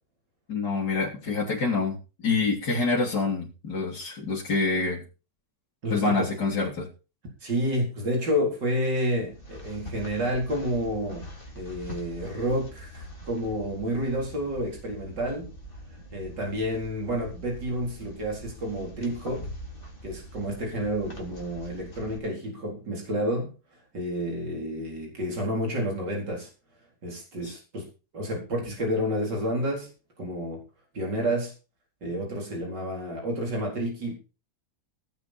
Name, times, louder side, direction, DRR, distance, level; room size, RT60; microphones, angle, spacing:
voice 1, 0.5-2.0 2.2-5.0 5.9-6.9 27.4-27.5, left 3 dB, 65° left, -5 dB, 3.9 m, -26 dB
voice 2, 5.8-6.3 7.4-11.2 11.6-15.5 16.1-19.5 20.0-23.5 23.9-26.5 27.0-27.9 28.1-29.9 30.2-30.6 30.9-31.5 32.0-34.2, equal, 85° right, 0 dB, 4.8 m, -29 dB
sound 1, 9.2-22.2, equal, 30° left, 3.8 m, -43 dB
18.0 x 8.9 x 4.5 m, 0.33 s
omnidirectional pair, 1.8 m